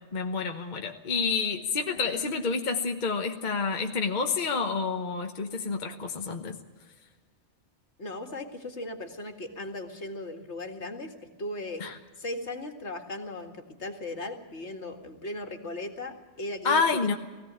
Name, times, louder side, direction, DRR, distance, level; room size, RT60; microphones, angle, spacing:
voice 1, 0.1-6.6 11.8-11.9 16.6-17.2, left 4 dB, 40° left, 4 dB, 1.2 m, -28 dB
voice 2, 8.0-11.8 12.2-17.2, left 1 dB, 70° left, 5 dB, 2.3 m, -37 dB
20.0 x 16.0 x 8.8 m, 1.4 s
omnidirectional pair, 1.2 m